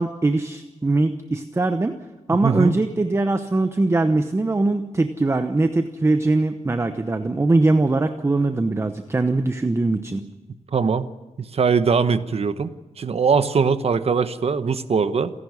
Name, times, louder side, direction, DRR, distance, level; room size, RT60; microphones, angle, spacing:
voice 1, 0.0-1.9 2.3-10.2, right 2 dB, 20° right, 9 dB, 0.9 m, -21 dB
voice 2, 2.4-2.7 10.7-11.1 11.5-15.3, right 5 dB, 55° right, 12 dB, 1.1 m, -21 dB
28.0 x 11.5 x 9.6 m, 1.2 s
wide cardioid pair, 140°, 12 cm